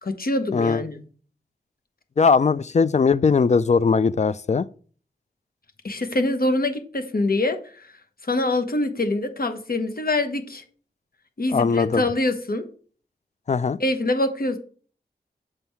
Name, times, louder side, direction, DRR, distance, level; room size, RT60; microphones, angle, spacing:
voice 1, 0.0-1.0 5.8-7.9 8.3-10.6 11.4-12.6 13.8-14.6, left 2 dB, 60° left, 1.1 m, -24 dB
voice 2, 2.2-4.7 11.5-12.0 13.5-13.8, left 5 dB, 45° left, 0.4 m, -19 dB
6.9 x 5.6 x 4.5 m
wide cardioid pair, 55°, 17 cm